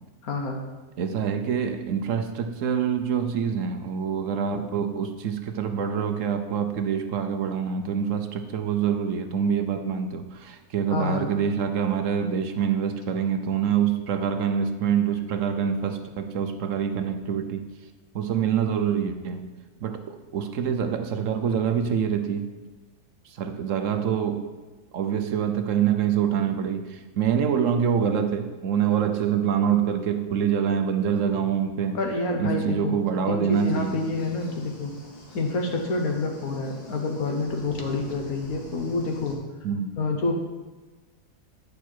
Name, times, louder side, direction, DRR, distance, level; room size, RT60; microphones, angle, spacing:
voice 1, 0.2-0.7 10.9-11.3 31.9-34.9 35.3-39.4 40.0-40.3, left 3 dB, 70° left, 2 dB, 1.5 m, -28 dB
voice 2, 1.0-17.7 18.1-19.5 19.8-22.5 23.2-24.5 24.9-32.0 32.4-34.0 39.6-39.9, right 8 dB, 65° right, 7 dB, 0.9 m, -25 dB
sound 1, 33.5-39.4, left 1 dB, 85° left, 2.5 m, -44 dB
9.9 x 6.7 x 4.5 m, 1.2 s
omnidirectional pair, 1.7 m